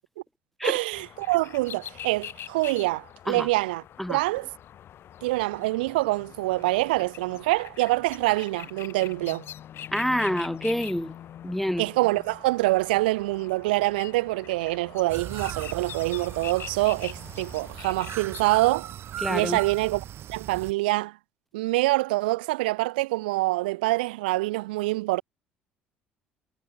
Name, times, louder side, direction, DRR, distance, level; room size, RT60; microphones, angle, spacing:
voice 1, 0.6-3.8 4.1-4.5 5.2-9.5 11.8-18.9 19.3-21.2 21.5-25.2, right 21 dB, 70° right, 0.7 m, -25 dB
sound 1, 0.9-18.4, left 10 dB, 45° left, 1.0 m, -44 dB
voice 2, 9.9-11.1 11.4-11.9 19.2-19.6, equal, 5° left, 0.3 m, -27 dB
sound 2, 15.1-20.7, right 11 dB, 45° right, 2.0 m, -38 dB
figure-of-eight pair, 55°, 5 cm